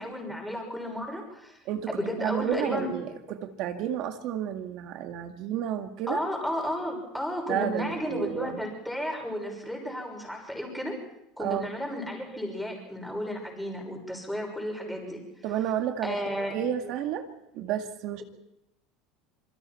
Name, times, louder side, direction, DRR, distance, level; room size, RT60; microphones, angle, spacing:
voice 1, 0.0-1.6 1.9-2.9 6.1-11.0 11.4-15.2 16.0-16.9, equal, ahead, 1 dB, 6.3 m, -33 dB
voice 2, 2.2-6.2 7.5-8.6 11.4-11.7 15.4-17.3 17.5-18.2, right 10 dB, 55° right, 5 dB, 2.0 m, -31 dB
26.5 x 23.5 x 4.5 m, 0.82 s
supercardioid pair, 135°, 0 cm